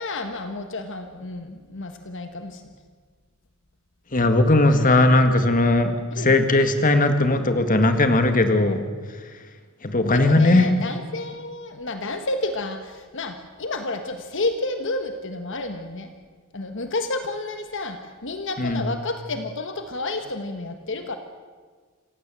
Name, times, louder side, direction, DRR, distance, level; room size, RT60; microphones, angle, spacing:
voice 1, 0.0-2.6 6.1-6.3 10.0-16.1 16.5-21.2, left 2 dB, 60° left, 7 dB, 1.5 m, -30 dB
voice 2, 4.1-8.8 9.8-10.7 18.6-18.8, left 2 dB, 40° left, 7 dB, 1.8 m, -18 dB
27.0 x 16.5 x 7.6 m, 1.5 s
head